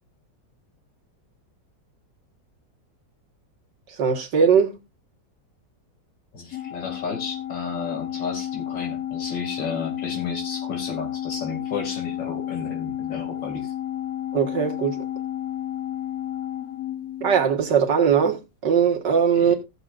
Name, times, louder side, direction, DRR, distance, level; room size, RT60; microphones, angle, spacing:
voice 1, 4.0-4.8 14.3-15.0 17.2-19.5, right 7 dB, 75° right, 2.2 m, -20 dB
voice 2, 6.3-13.7 19.4-19.6, left 5 dB, 80° left, 3.2 m, -33 dB
Organ, 6.5-17.8, left 11 dB, 65° left, 1.1 m, -31 dB
16.5 x 6.9 x 2.5 m
omnidirectional pair, 1.9 m